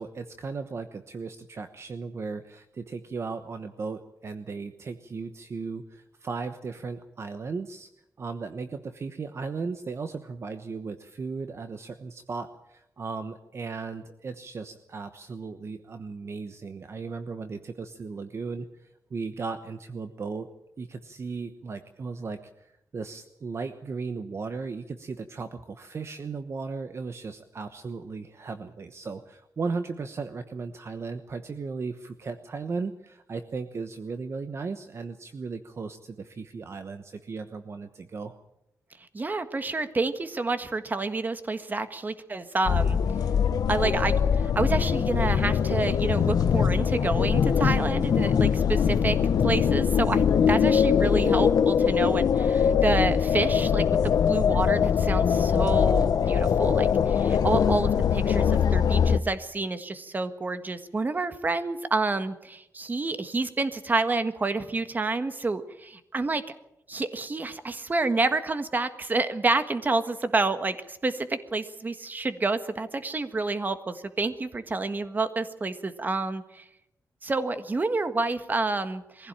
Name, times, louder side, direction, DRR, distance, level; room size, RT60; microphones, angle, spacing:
voice 1, 0.0-7.9 8.2-20.5 20.8-38.4, right 4 dB, 45° right, 9 dB, 1.1 m, -36 dB
voice 2, 39.1-43.0 43.7-66.4 66.9-76.6 77.2-79.3, right 3 dB, 30° right, 10 dB, 1.6 m, -29 dB
sound 1, 42.7-59.2, left 7 dB, 80° left, 1.1 m, -22 dB
22.5 x 16.0 x 8.9 m, 0.83 s
wide cardioid pair, 145°, 7 cm